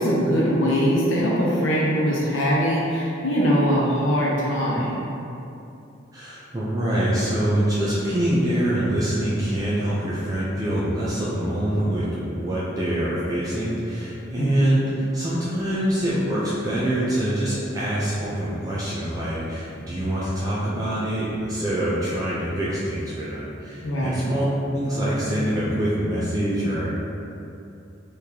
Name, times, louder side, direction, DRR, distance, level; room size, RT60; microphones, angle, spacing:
voice 1, 0.0-5.0 14.4-14.7 23.8-24.2, equal, 75° left, -6 dB, 0.7 m, -22 dB
voice 2, 6.1-26.9, right 1 dB, 20° right, -9 dB, 0.5 m, -25 dB
4.1 x 3.2 x 2.8 m, 2.7 s
head